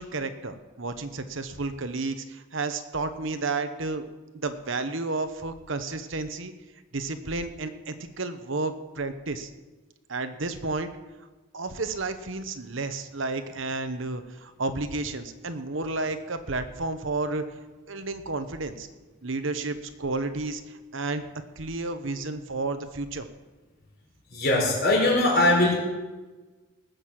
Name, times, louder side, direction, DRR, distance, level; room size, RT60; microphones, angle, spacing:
voice 1, 0.0-4.0 4.3-6.5 6.9-9.5 10.1-10.9 11.5-17.4 17.9-18.9 19.2-21.2 21.6-23.3, right 3 dB, 65° right, 9 dB, 1.1 m, -31 dB
voice 2, 24.3-25.8, left 2 dB, 50° left, -2 dB, 5.1 m, -21 dB
19.5 x 6.6 x 7.6 m, 1.2 s
head